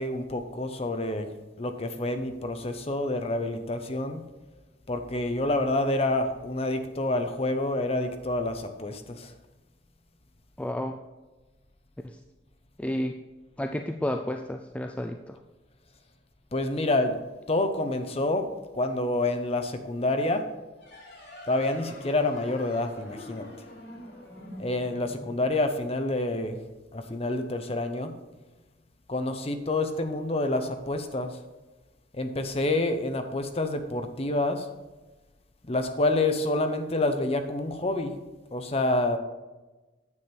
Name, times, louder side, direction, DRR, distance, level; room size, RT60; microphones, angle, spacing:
voice 1, 0.0-1.3 1.6-4.2 4.9-9.3 16.5-17.1 17.5-18.5 18.7-20.5 21.5-23.5 24.6-26.6 26.9-28.1 29.1-31.4 32.1-34.7 35.7-38.1 38.5-39.2, left 2 dB, 35° left, 7 dB, 0.8 m, -28 dB
voice 2, 10.6-11.0 12.0-12.2 12.8-13.2 13.6-15.4, left 1 dB, 5° left, 5 dB, 0.3 m, -31 dB
sound 1, 20.8-26.0, left 1 dB, 85° left, 3.6 m, -45 dB
9.7 x 7.3 x 4.4 m, 1.2 s
head